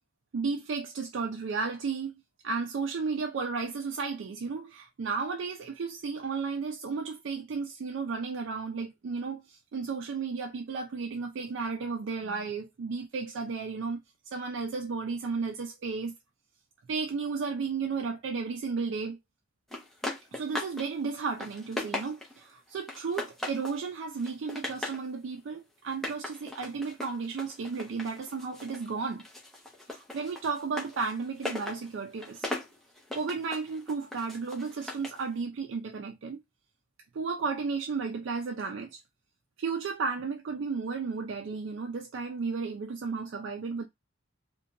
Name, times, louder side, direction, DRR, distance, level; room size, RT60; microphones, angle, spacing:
voice 1, 0.3-14.0 14.3-16.2 16.9-19.2 20.3-29.2 29.9-32.5 33.1-36.4 37.1-39.0 39.6-43.9, right 4 dB, 65° right, 0.4 m, -33 dB
sound 1, 19.7-20.9 21.2-22.4 22.9-23.8 24.2-25.0 25.9-28.9 29.2-35.2, left 1 dB, ahead, 0.6 m, -38 dB
2.8 x 2.2 x 2.4 m
head